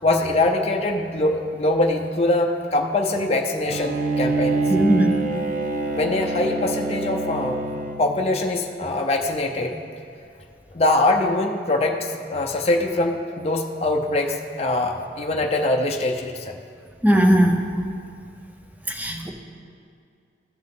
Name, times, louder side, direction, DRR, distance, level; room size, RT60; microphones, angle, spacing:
voice 1, 0.0-4.6 5.9-7.6 8.0-9.8 10.7-12.0 12.3-16.6, left 2 dB, 35° left, 2 dB, 0.5 m, -23 dB
Bowed string instrument, 3.7-8.3, right 3 dB, 45° right, 0.6 m, -25 dB
voice 2, 4.7-5.2 17.0-17.7 18.9-19.3, equal, 10° right, 3 dB, 0.6 m, -18 dB
14.5 x 5.6 x 3.8 m, 2.3 s
head